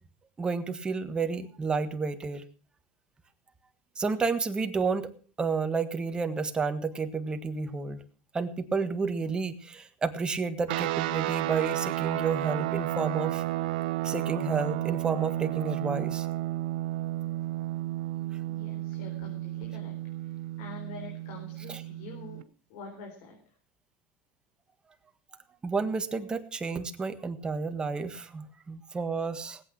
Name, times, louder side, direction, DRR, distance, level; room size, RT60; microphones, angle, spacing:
voice 1, 0.4-2.4 4.0-5.1 5.4-8.0 8.3-13.4 14.0-16.3 21.7-21.8 25.6-29.6, right 4 dB, 20° right, 8 dB, 1.5 m, -31 dB
sound 1, 10.7-22.4, right 16 dB, 85° right, 0.8 m, -32 dB
voice 2, 18.4-19.9 20.2-22.4 22.7-23.4, left 3 dB, 75° left, 1 dB, 4.1 m, -46 dB
18.5 x 8.6 x 6.0 m, 0.40 s
supercardioid pair, 125°, 5 cm